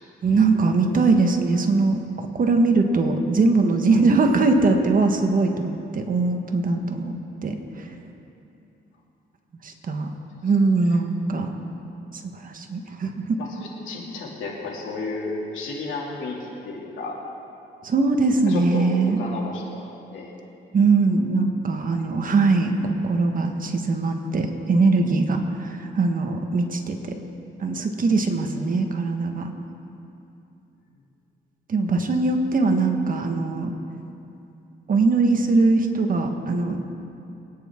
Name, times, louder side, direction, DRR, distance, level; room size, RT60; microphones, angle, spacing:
voice 1, 0.2-7.2 7.4-7.9 9.6-10.1 10.4-11.5 12.2-13.4 17.8-19.2 20.7-27.0 27.6-29.5 31.7-33.7 34.9-36.9, right 3 dB, 45° right, 4 dB, 1.5 m, -21 dB
voice 2, 13.4-17.2 18.5-20.3 21.9-22.0 22.3-22.4, left 3 dB, 80° left, -2 dB, 2.7 m, -33 dB
23.5 x 9.7 x 3.7 m, 2.8 s
cardioid pair, 90°, 20 cm